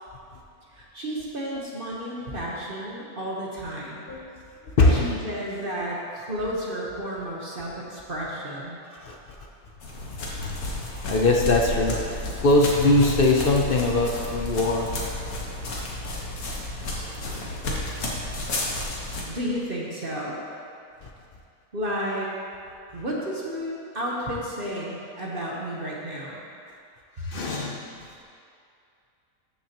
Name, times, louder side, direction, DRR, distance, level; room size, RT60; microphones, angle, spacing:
voice 1, 0.7-4.0 4.9-8.8 19.3-20.4 21.7-22.3 22.9-26.4, equal, 40° right, -4 dB, 1.2 m, -32 dB
voice 2, 4.7-5.2 9.0-9.2 10.4-10.5 11.1-12.0 12.4-14.9 27.2-27.8, left 2 dB, 50° left, 1 dB, 0.7 m, -21 dB
sound 1, 9.8-19.2, left 2 dB, 75° left, 1.7 m, -31 dB
13.5 x 6.6 x 2.9 m, 2.4 s
omnidirectional pair, 1.6 m